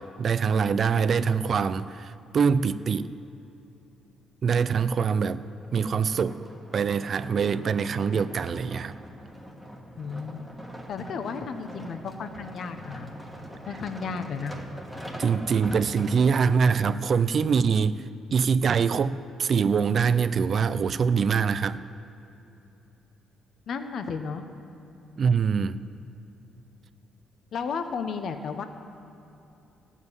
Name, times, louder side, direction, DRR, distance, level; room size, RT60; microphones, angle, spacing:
voice 1, 0.0-3.1 4.4-5.4 5.7-6.4 6.7-9.0 15.2-21.8 25.2-25.9, right 6 dB, 40° right, 14 dB, 0.4 m, -24 dB
sound 1, 5.6-16.6 17.2-17.3, equal, 5° left, 1.5 m, -42 dB
voice 2, 10.0-10.5 10.9-13.1 13.6-14.5 23.7-24.4 27.5-28.6, left 5 dB, 50° left, 8 dB, 0.8 m, -33 dB
14.5 x 7.3 x 9.6 m, 2.9 s
cardioid pair, 150°, 0 cm